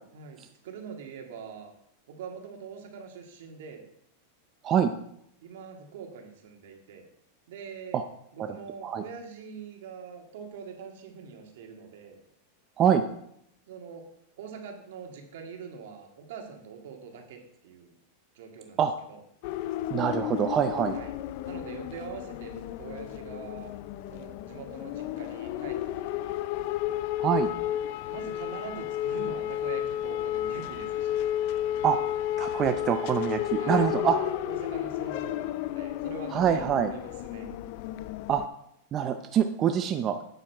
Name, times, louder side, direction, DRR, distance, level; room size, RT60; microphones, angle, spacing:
voice 1, 0.1-1.7 2.1-3.8 5.4-7.0 7.5-8.0 8.3-12.2 13.7-14.1 14.4-17.9 18.3-18.8 19.1-19.2 20.9-21.1 21.4-23.7 24.1-26.4 28.1-31.3 33.6-37.5, right 6 dB, 70° right, 3 dB, 2.0 m, -43 dB
voice 2, 8.4-9.0 12.8-13.0 18.8-18.9 19.9-21.0 27.2-27.5 31.8-32.0 32.4-34.2 36.3-36.9 38.3-38.4 38.9-40.2, right 8 dB, 30° right, 7 dB, 0.5 m, -25 dB
sound 1, 19.4-38.5, left 12 dB, 55° left, 0.4 m, -32 dB
8.8 x 6.7 x 4.6 m, 0.73 s
supercardioid pair, 145°, 0 cm